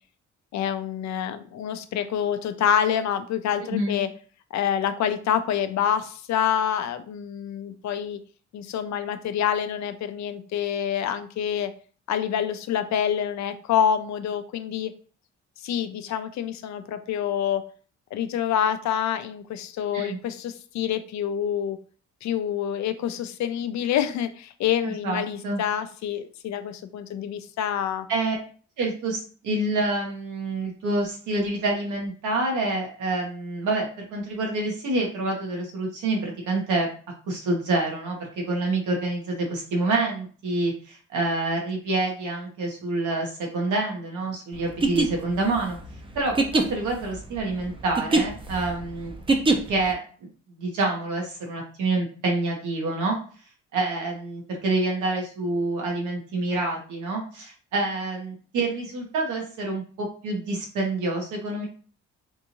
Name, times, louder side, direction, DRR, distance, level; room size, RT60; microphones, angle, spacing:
voice 1, 0.5-4.1 4.5-8.2 8.5-11.7 12.1-14.9 15.6-17.6 18.1-21.8 22.2-28.1, left 9 dB, 65° left, 10 dB, 0.5 m, -27 dB
voice 2, 3.7-4.0 19.9-20.2 24.8-25.6 28.1-28.3 28.8-36.9 37.3-45.8 46.1-49.1 49.7-53.2 53.7-61.7, right 2 dB, 80° right, 0 dB, 1.3 m, -27 dB
sound 1, 44.7-49.9, right 3 dB, 15° right, 0.5 m, -24 dB
3.5 x 2.6 x 2.9 m, 0.42 s
cardioid pair, 90°, 30 cm